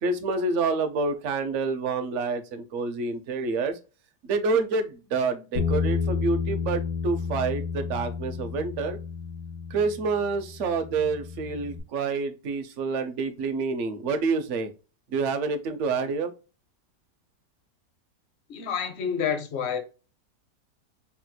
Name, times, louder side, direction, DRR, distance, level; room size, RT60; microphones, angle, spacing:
voice 1, 0.0-3.8 4.2-9.0 9.7-14.7 15.1-16.3, right 4 dB, 55° right, 0.9 m, -28 dB
Bass guitar, 5.6-11.8, left 5 dB, 65° left, 1.9 m, -31 dB
voice 2, 18.5-19.8, left 7 dB, 50° left, 0.9 m, -28 dB
5.7 x 3.0 x 2.2 m
omnidirectional pair, 1.8 m